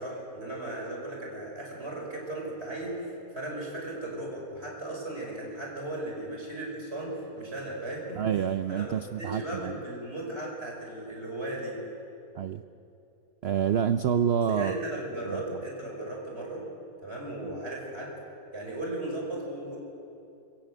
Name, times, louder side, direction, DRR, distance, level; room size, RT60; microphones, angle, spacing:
voice 1, 0.0-8.2 8.7-11.8 14.5-16.6 17.0-18.2 18.5-19.8, right 1 dB, 40° right, -1 dB, 5.6 m, -36 dB
voice 2, 8.2-9.8 12.4-12.6 13.4-14.8 15.3-15.4 17.4-17.5, right 8 dB, 70° right, 11 dB, 0.6 m, -28 dB
23.5 x 17.5 x 7.8 m, 2.8 s
omnidirectional pair, 1.7 m